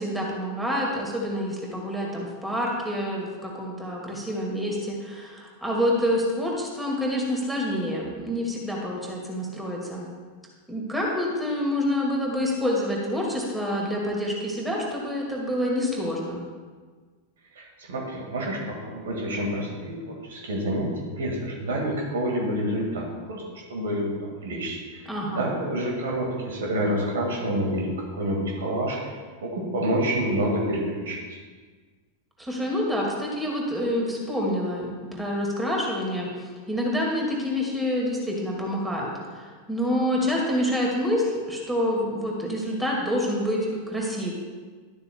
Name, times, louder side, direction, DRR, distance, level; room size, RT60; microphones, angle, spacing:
voice 1, 0.0-10.1 10.7-16.4 25.1-25.5 32.4-44.3, equal, 5° right, -2 dB, 2.3 m, -27 dB
voice 2, 17.6-24.2 24.4-31.4, right 1 dB, 60° right, 0 dB, 2.1 m, -28 dB
12.5 x 12.0 x 2.4 m, 1.5 s
figure-of-eight pair, 90°, 0 cm